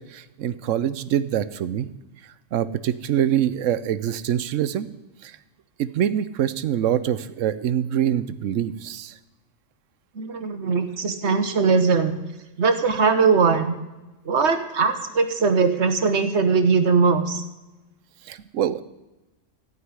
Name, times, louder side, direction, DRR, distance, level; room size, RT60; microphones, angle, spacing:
voice 1, 0.0-1.9 2.5-4.9 5.2-5.4 5.8-9.1 18.3-18.8, right 10 dB, 90° right, 15 dB, 1.0 m, -24 dB
voice 2, 10.1-12.1 12.6-13.7 14.2-17.4, right 5 dB, 65° right, 9 dB, 1.3 m, -20 dB
14.5 x 5.6 x 9.6 m, 1.1 s
omnidirectional pair, 1.3 m